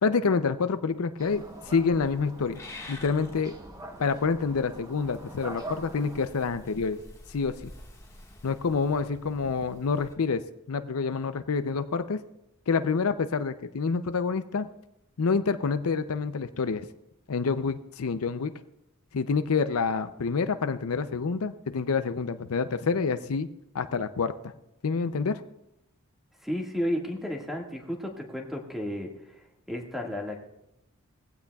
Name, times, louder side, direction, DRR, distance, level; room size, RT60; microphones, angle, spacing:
voice 1, 0.0-2.6 2.9-3.5 4.0-7.0 7.3-7.5 8.4-12.2 12.7-14.7 15.2-16.8 17.3-18.5 19.1-23.5 23.7-24.5 24.8-25.4, left 5 dB, 75° left, 10 dB, 0.5 m, -27 dB
Purr / Meow, 1.2-10.2, left 1 dB, 15° left, 1.6 m, -49 dB
sound 1, 1.2-6.2, right 2 dB, 15° right, 0.9 m, -44 dB
voice 2, 26.4-29.1 29.7-30.4, equal, ahead, 0 dB, 1.8 m, -32 dB
20.5 x 15.5 x 2.3 m, 0.86 s
head